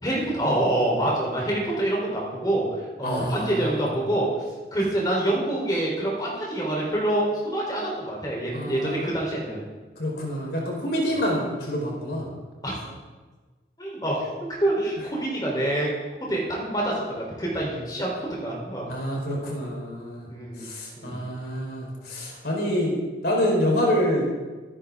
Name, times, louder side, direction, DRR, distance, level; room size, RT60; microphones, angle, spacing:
voice 1, 0.0-2.6 3.0-4.3 4.7-9.6 12.6-12.7 13.8-14.3 14.6-15.9 16.2-18.9 20.3-20.7 21.0-21.2, right 1 dB, 20° left, -3 dB, 3.7 m, -26 dB
voice 2, 3.0-3.7 8.5-9.1 10.0-12.2 18.9-20.3 20.6-22.9 23.2-24.3, equal, 60° left, -2 dB, 4.5 m, -27 dB
25.0 x 11.0 x 3.7 m, 1.3 s
head